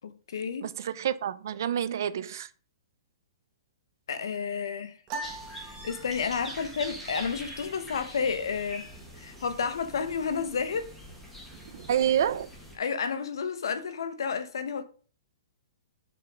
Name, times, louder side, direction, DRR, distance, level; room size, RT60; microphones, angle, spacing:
voice 1, 0.0-0.7 4.1-5.0 5.5-8.9 9.2-10.9 12.8-14.8, left 6 dB, 75° left, 1.2 m, -31 dB
voice 2, 0.6-2.5 11.7-12.5, right 9 dB, 50° right, 0.6 m, -28 dB
sound 1, 5.1-6.6, right 3 dB, 20° right, 1.2 m, -40 dB
sound 2, 5.2-12.8, equal, 5° left, 1.7 m, -44 dB
6.1 x 5.6 x 5.1 m
hypercardioid pair, 175°, 2 cm